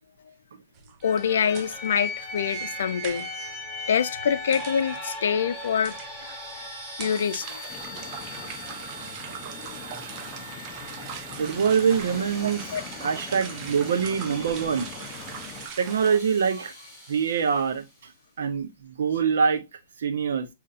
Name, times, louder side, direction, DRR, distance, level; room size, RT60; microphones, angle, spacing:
sound 1, 0.7-16.2, right 7 dB, 30° right, 0.7 m, -42 dB
voice 1, 1.0-3.3 3.9-5.9 7.0-7.6 12.7-12.8, left 7 dB, 80° left, 0.5 m, -25 dB
sound 2, 1.0-17.7, left 1 dB, 5° right, 3.0 m, -39 dB
sound 3, 7.7-15.7, left 7 dB, 25° left, 0.7 m, -43 dB
voice 2, 11.4-12.7 13.0-14.9 15.8-16.7 17.1-17.9 18.4-19.6 20.0-20.5, right 6 dB, 80° right, 0.9 m, -24 dB
6.7 x 2.8 x 2.5 m
hypercardioid pair, 150°, 0 cm